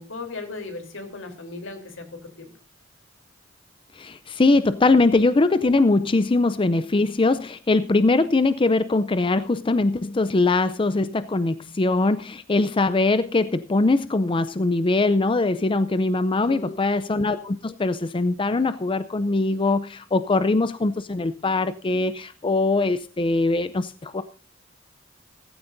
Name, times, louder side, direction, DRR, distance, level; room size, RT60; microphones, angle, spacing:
voice 1, 0.0-2.1 2.4-2.5 16.3-16.7, left 3 dB, 80° left, 6 dB, 3.5 m, -36 dB
voice 2, 3.9-24.2, left 3 dB, 25° left, 13 dB, 0.5 m, -22 dB
16.0 x 15.0 x 2.6 m, 0.38 s
head